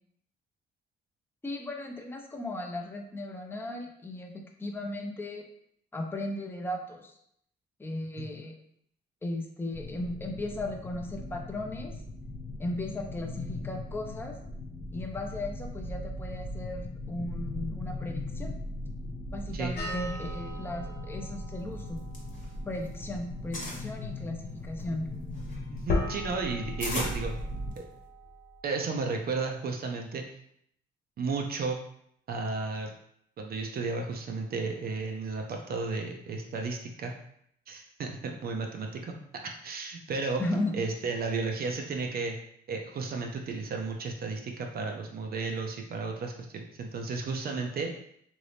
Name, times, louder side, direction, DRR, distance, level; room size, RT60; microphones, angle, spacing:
voice 1, 1.4-5.5 5.9-7.1 7.8-8.5 9.2-11.9 12.6-14.4 14.9-18.5 19.3-22.0 22.7-25.1 40.4-40.8, left 1 dB, 10° left, 2 dB, 0.5 m, -36 dB
sound 1, 9.7-27.7, left 1 dB, 90° left, 1.1 m, -39 dB
sound 2, 19.8-28.6, left 2 dB, 55° left, 0.8 m, -39 dB
sound 3, 21.8-23.0 23.2-23.9 24.5-28.1, left 1 dB, 40° left, 1.0 m, -38 dB
voice 2, 25.7-27.3 27.8-27.9 28.6-30.2 31.2-31.8 32.3-32.9 33.4-37.1 37.7-39.2 39.4-40.4 40.7-42.4 42.7-47.9, right 4 dB, 50° right, 2 dB, 0.5 m, -33 dB
3.0 x 2.6 x 3.3 m, 0.71 s
cardioid pair, 90°, 20 cm